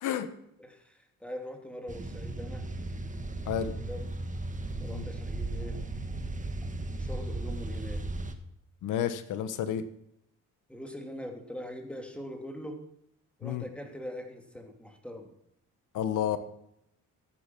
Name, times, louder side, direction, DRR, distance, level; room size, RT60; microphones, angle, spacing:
voice 1, 0.6-2.7 3.4-4.2 4.8-5.8 7.0-8.1 10.7-12.9 13.4-15.3, equal, 5° left, 3 dB, 2.8 m, -42 dB
sound 1, 1.9-8.3, right 2 dB, 25° right, 1.6 m, -36 dB
voice 2, 8.8-9.8 13.4-13.6 15.9-16.4, left 10 dB, 85° left, 11 dB, 1.3 m, -30 dB
14.0 x 10.5 x 6.0 m, 0.77 s
cardioid pair, 90°, 30 cm